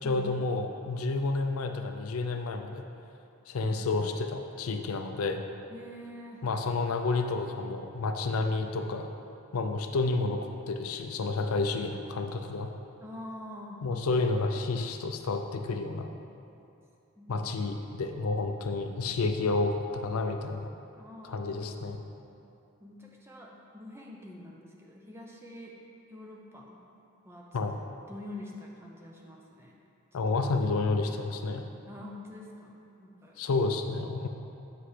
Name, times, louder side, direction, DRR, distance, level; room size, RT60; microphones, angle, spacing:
voice 1, 0.0-2.8 3.5-5.4 6.4-9.1 9.5-10.4 10.7-12.7 13.8-16.1 17.3-20.7 21.2-22.0 27.5-27.8 30.1-31.7 33.4-34.3, left 3 dB, 90° left, 5 dB, 0.5 m, -30 dB
voice 2, 5.7-6.4 13.0-13.8 17.2-17.5 21.0-21.8 22.8-25.7 26.1-26.8 27.2-27.4 28.1-29.7 31.9-32.7 33.0-33.7 33.9-34.3, left 1 dB, 10° right, -2 dB, 0.6 m, -46 dB
7.8 x 5.8 x 3.3 m, 2.8 s
head